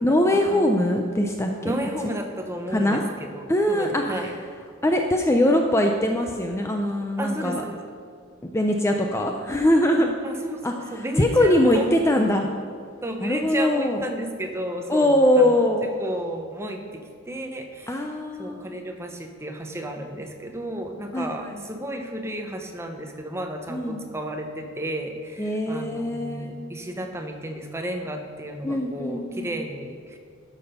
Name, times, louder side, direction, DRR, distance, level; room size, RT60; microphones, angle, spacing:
voice 1, 0.0-1.7 2.0-2.1 2.7-3.0 3.5-4.3 4.8-7.6 8.4-10.1 10.6-12.5 13.2-14.0 14.9-15.9 17.9-18.6 21.1-21.6 23.7-24.0 25.4-26.6 28.6-29.6, left 1 dB, 15° left, 3 dB, 0.5 m, -22 dB
voice 2, 1.6-4.3 7.2-7.8 9.9-11.9 13.0-15.6 16.0-18.0 18.4-30.2, right 1 dB, 15° right, 4 dB, 0.8 m, -33 dB
12.0 x 6.0 x 5.4 m, 2.2 s
head